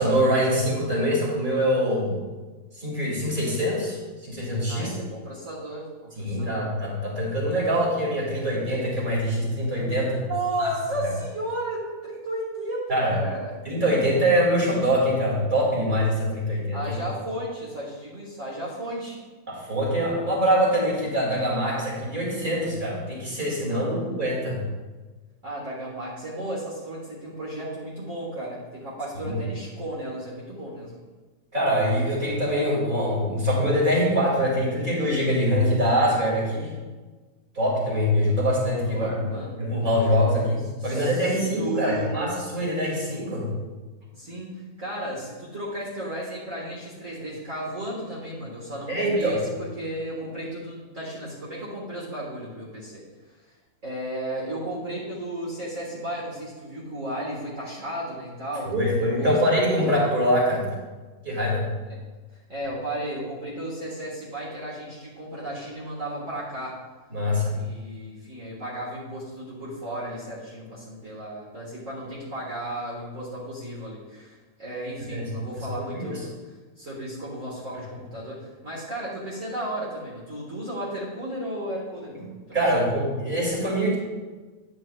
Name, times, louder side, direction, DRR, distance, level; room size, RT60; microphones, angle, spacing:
voice 1, 0.0-2.1 2.7-4.9 6.2-10.2 10.6-10.7 12.9-13.1 13.6-17.0 19.5-24.6 29.2-29.3 31.5-36.7 37.5-39.2 39.6-43.5 48.9-49.4 58.7-60.7 61.2-61.7 67.1-67.6 75.1-75.3 75.9-76.2 82.5-84.0, equal, 30° right, -5 dB, 2.6 m, -24 dB
voice 2, 4.6-6.6 10.3-13.5 16.7-19.2 23.7-24.2 25.4-31.0 38.8-39.5 40.8-42.2 44.1-53.0 53.4-53.5 53.8-59.4 61.9-62.0 62.5-66.8 67.6-82.8, right 1 dB, 55° right, -7 dB, 2.0 m, -34 dB
10.0 x 8.9 x 2.4 m, 1.3 s
omnidirectional pair, 1.6 m